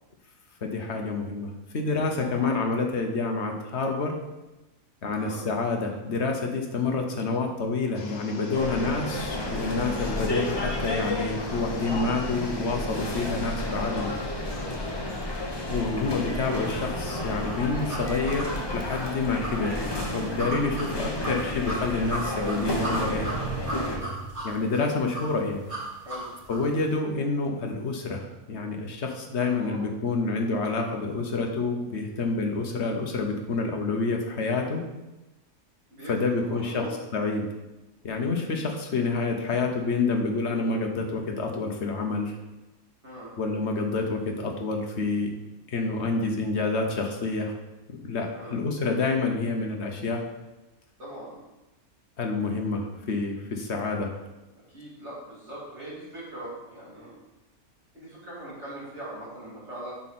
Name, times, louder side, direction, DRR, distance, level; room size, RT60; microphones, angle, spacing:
voice 1, 0.6-4.2 5.0-14.1 15.7-23.3 24.4-25.6 26.5-34.8 36.1-36.9 37.1-37.5 38.0-42.4 43.4-45.3 45.7-47.5 47.9-50.2 52.2-54.2, left 3 dB, 55° left, 3 dB, 1.3 m, -28 dB
voice 2, 2.2-2.6 5.2-5.4 8.5-8.7 13.9-14.1 14.5-14.7 20.2-20.5 23.8-24.1 26.1-26.3 29.4-29.9 35.9-37.0 43.0-43.3 48.3-48.6 51.0-51.4 54.7-57.1 57.9-59.9, right 1 dB, 50° right, -7 dB, 3.5 m, -41 dB
sound 1, 7.9-17.9, left 4 dB, 85° left, 1.4 m, -42 dB
sound 2, 8.5-24.0, left 1 dB, 20° left, 0.8 m, -32 dB
sound 3, 16.7-26.7, right 2 dB, 85° right, 4.1 m, -36 dB
8.1 x 6.3 x 4.3 m, 1.0 s
omnidirectional pair, 1.5 m